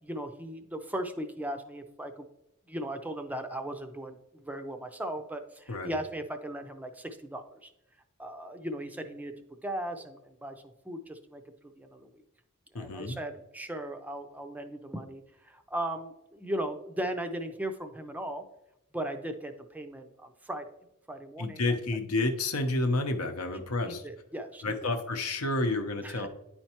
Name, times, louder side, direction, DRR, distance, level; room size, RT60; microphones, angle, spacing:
voice 1, 0.0-2.3 2.7-7.7 8.2-9.3 9.6-10.6 10.8-12.2 12.7-18.5 18.9-20.7 21.1-21.8 23.5-24.9 26.0-26.3, right 1 dB, 5° right, 6 dB, 0.4 m, -37 dB
voice 2, 12.7-13.2 21.4-24.0 24.6-26.3, left 2 dB, 70° left, 7 dB, 0.8 m, -30 dB
9.7 x 4.4 x 2.9 m, 0.86 s
head